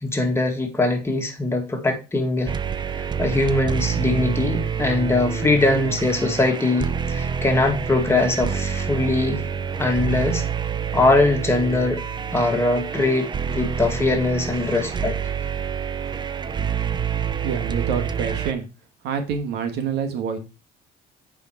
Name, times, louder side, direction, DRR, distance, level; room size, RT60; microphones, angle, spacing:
voice 1, 0.0-2.5 2.9-9.4 9.8-10.4 10.9-12.0 12.3-15.2, left 2 dB, 15° left, 2.0 m, -21 dB
sound 1, 2.5-18.5, right 7 dB, 25° right, 0.5 m, -27 dB
voice 2, 17.4-18.6 19.0-20.4, right 6 dB, 85° right, 1.5 m, -26 dB
8.2 x 5.1 x 4.4 m
cardioid pair, 110°, 17 cm